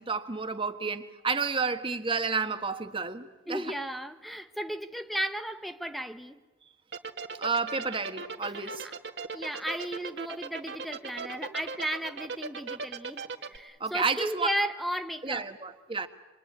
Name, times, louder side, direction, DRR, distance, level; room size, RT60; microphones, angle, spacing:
voice 1, 0.0-3.7 7.4-8.9 13.8-14.5 15.2-16.1, right 4 dB, 30° right, 1.4 m, -31 dB
voice 2, 3.5-6.4 8.6-8.9 9.3-13.2 13.5-15.5, equal, ahead, 0.9 m, -34 dB
sound 1, 6.9-13.6, right 4 dB, 70° right, 2.0 m, -37 dB
27.0 x 23.0 x 9.5 m
head